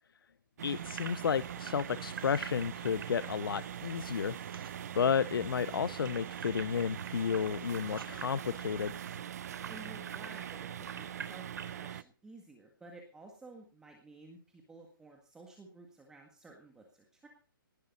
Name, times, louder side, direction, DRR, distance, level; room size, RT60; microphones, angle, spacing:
voice 1, 0.6-4.4 4.9-8.9, left 7 dB, 75° left, 16 dB, 0.7 m, -32 dB
sound 1, 0.6-12.0, right 10 dB, 45° right, 0.7 m, -42 dB
sound 2, 0.6-9.2, right 5 dB, 80° right, 2.7 m, -53 dB
sound 3, 0.9-4.8 5.0-5.1 5.4-11.8, right 6 dB, 65° right, 3.3 m, -47 dB
voice 2, 9.7-17.3, right 2 dB, 5° right, 2 dB, 1.8 m, -53 dB
19.0 x 12.0 x 4.2 m, 0.38 s
hypercardioid pair, 165°, 12 cm